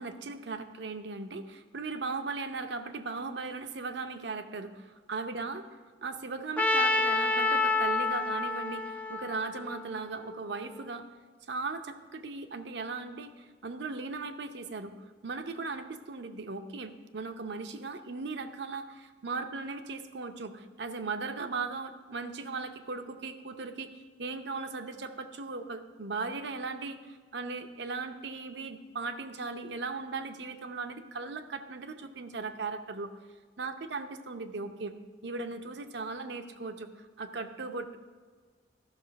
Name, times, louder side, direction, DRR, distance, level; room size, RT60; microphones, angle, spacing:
voice 1, 0.0-5.6 6.0-11.1 11.5-33.1 33.6-34.9 35.2-38.0, right 4 dB, 60° right, 8 dB, 0.7 m, -38 dB
Trumpet, 6.6-10.6, left 3 dB, 10° left, 0.4 m, -29 dB
13.0 x 6.1 x 5.2 m, 1.6 s
head